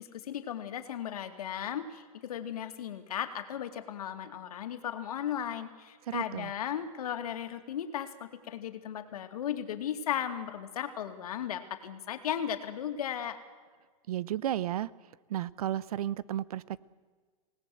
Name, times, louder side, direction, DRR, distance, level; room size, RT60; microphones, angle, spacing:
voice 1, 0.0-13.4, left 9 dB, 80° left, 7 dB, 2.5 m, -36 dB
voice 2, 6.1-6.5 14.1-14.9 15.3-16.9, right 12 dB, 80° right, 19 dB, 1.0 m, -33 dB
27.5 x 19.0 x 7.9 m, 1.5 s
supercardioid pair, 145°, 19 cm